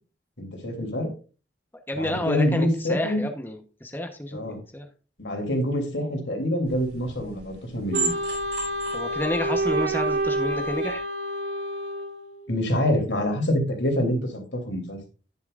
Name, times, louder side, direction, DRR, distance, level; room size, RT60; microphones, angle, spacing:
voice 1, 0.4-1.1 2.0-3.2 4.3-4.6 5.2-8.1 12.5-15.0, left 1 dB, 80° left, 3 dB, 3.2 m, -26 dB
voice 2, 1.9-4.9 8.9-11.0, left 1 dB, 10° left, 5 dB, 1.0 m, -30 dB
sound 1, 6.7-10.9, right 5 dB, 60° right, 5.4 m, -36 dB
Wind instrument woodwind instrument, 7.9-12.5, right 1 dB, 80° right, 1.2 m, -28 dB
11.0 x 9.9 x 2.5 m, 0.34 s
head